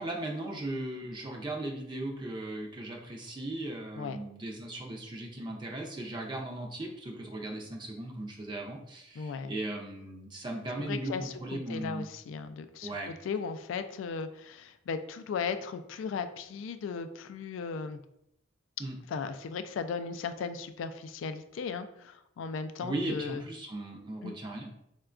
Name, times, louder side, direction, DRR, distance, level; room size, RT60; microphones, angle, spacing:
voice 1, 0.0-12.1 12.8-13.1 18.8-19.0 22.8-24.7, right 1 dB, 25° right, 0 dB, 0.4 m, -37 dB
voice 2, 9.2-9.5 10.8-18.0 19.1-23.4 24.2-24.4, left 5 dB, 85° left, 9 dB, 0.3 m, -37 dB
4.4 x 2.2 x 2.4 m, 0.78 s
head